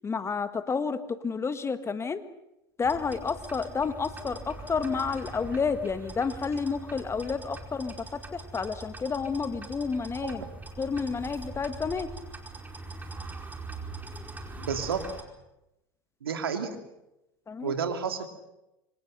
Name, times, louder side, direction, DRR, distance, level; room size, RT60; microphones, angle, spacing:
voice 1, 0.0-2.2 2.8-10.4 10.8-12.1 17.5-17.7, left 5 dB, 20° left, 11 dB, 1.6 m, -30 dB
sound 1, 2.8-15.2, right 2 dB, 15° right, 4.9 m, -42 dB
voice 2, 14.6-15.0 16.2-16.7 17.6-18.3, right 6 dB, 85° right, 6 dB, 2.7 m, -30 dB
26.5 x 25.5 x 6.6 m, 0.91 s
hypercardioid pair, 85°, 12 cm